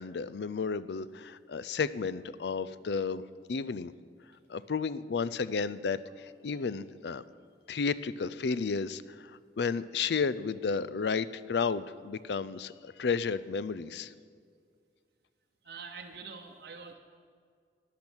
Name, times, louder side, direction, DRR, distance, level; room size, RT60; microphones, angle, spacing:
voice 1, 0.0-3.2 3.5-3.9 4.5-7.2 7.7-14.1, left 5 dB, 70° left, 16 dB, 0.5 m, -32 dB
voice 2, 15.6-16.9, right 5 dB, 65° right, 1 dB, 0.9 m, -45 dB
14.0 x 10.5 x 6.2 m, 2.1 s
head